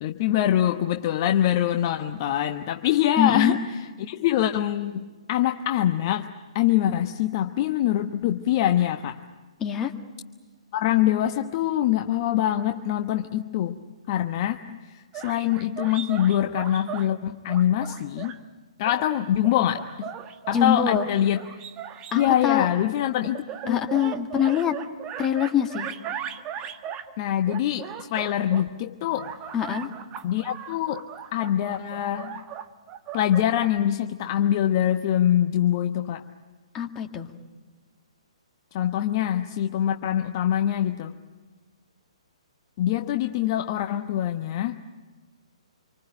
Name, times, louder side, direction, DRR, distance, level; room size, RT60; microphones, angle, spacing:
voice 1, 0.0-3.6 4.0-6.3 6.5-9.2 10.7-13.8 14.1-18.4 18.8-20.1 20.5-21.4 22.1-23.8 27.2-29.3 30.2-31.1 31.3-32.4 33.1-36.2 38.7-41.1 42.8-44.8, left 11 dB, 35° left, 6 dB, 1.0 m, -24 dB
voice 2, 3.2-3.6 9.6-9.9 20.5-21.1 22.1-22.7 23.7-24.8 25.2-25.9 29.5-29.9 36.7-37.3, left 9 dB, 15° left, 4 dB, 2.0 m, -24 dB
sound 1, 15.1-17.1 17.5-18.4 18.9-22.5 23.2-27.1 27.5-28.7 29.1-33.8, right 9 dB, 25° right, 1.4 m, -38 dB
27.0 x 24.5 x 9.0 m, 1.4 s
figure-of-eight pair, 125°, 3 cm